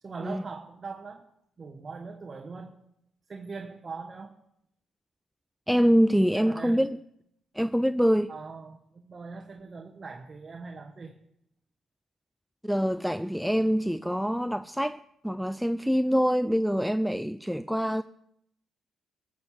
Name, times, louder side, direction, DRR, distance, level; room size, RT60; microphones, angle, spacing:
voice 1, 0.0-1.2 1.6-2.8 3.3-4.4 6.4-6.9 8.3-11.1, right 4 dB, 35° right, 1.1 m, -41 dB
voice 2, 5.7-7.0 7.6-8.3 12.6-18.0, equal, ahead, 0.4 m, -25 dB
14.5 x 6.3 x 7.3 m
cardioid pair, 90°, 0 cm